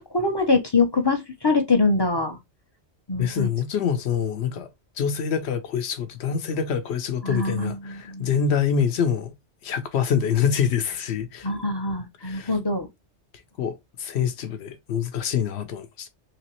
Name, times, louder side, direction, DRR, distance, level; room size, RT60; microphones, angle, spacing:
voice 1, 0.1-2.4 3.1-3.5 7.2-8.3 11.4-12.9, left 3 dB, 30° left, 0.5 m, -23 dB
voice 2, 3.2-4.7 5.0-9.3 9.6-11.5 12.2-12.6 13.6-16.1, left 7 dB, 65° left, 0.9 m, -25 dB
3.4 x 2.9 x 2.8 m
omnidirectional pair, 1.2 m